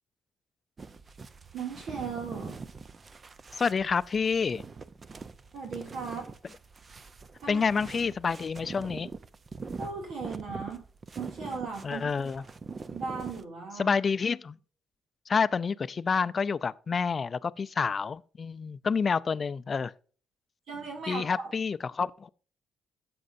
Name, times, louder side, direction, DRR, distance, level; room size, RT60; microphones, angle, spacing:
sound 1, 0.8-13.4, right 4 dB, 35° right, 0.6 m, -44 dB
voice 1, 1.5-2.6 5.5-6.3 7.4-7.6 9.8-10.8 11.2-12.1 12.9-13.9 20.7-21.5, right 5 dB, 75° right, 2.6 m, -37 dB
voice 2, 3.5-4.6 7.5-9.1 11.8-12.4 13.8-14.6 15.3-19.9 21.1-22.3, left 5 dB, 40° left, 0.4 m, -28 dB
12.5 x 7.8 x 2.7 m
cardioid pair, 90°, 0 cm